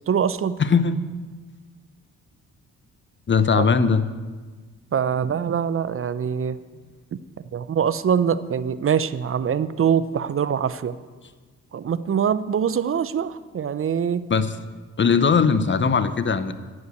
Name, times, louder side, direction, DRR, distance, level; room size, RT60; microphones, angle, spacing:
voice 1, 0.1-0.6 3.6-3.7 4.9-6.6 7.5-11.0 11.7-14.3, right 7 dB, 40° right, 15 dB, 0.6 m, -23 dB
voice 2, 0.6-1.0 3.3-4.0 14.3-14.6 15.0-16.5, left 5 dB, 35° left, 13 dB, 0.8 m, -19 dB
11.5 x 5.5 x 8.0 m, 1.4 s
supercardioid pair, 50°, 35 cm